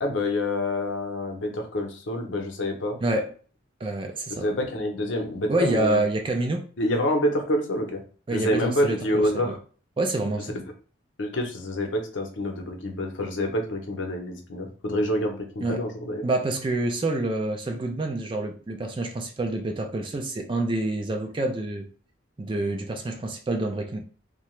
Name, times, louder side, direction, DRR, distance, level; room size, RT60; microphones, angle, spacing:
voice 1, 0.0-3.0 4.4-6.0 6.8-8.0 8.3-9.6 11.2-16.3, left 1 dB, 70° left, 0.7 m, -27 dB
voice 2, 3.8-4.5 5.5-6.6 8.3-9.6 10.0-10.6 15.6-15.8 16.2-21.9 22.4-24.0, right 2 dB, 25° right, 0.4 m, -27 dB
2.8 x 2.2 x 3.0 m
head